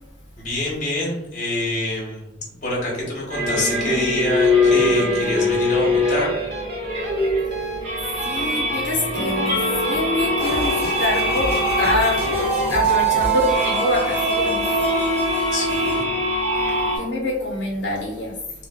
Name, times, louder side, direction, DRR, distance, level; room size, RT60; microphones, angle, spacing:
voice 1, 0.4-6.3 15.5-16.0, left 1 dB, 45° left, 1.0 m, -26 dB
sound 1, 3.3-17.0, left 1 dB, 35° right, 1.1 m, -22 dB
sound 2, 5.2-13.3, right 1 dB, 60° right, 0.6 m, -35 dB
voice 2, 8.2-12.3 12.7-14.9 16.9-18.4, left 1 dB, 75° left, 0.8 m, -25 dB
sound 3, 10.4-16.0, right 1 dB, 15° right, 0.4 m, -26 dB
2.4 x 2.2 x 3.6 m
head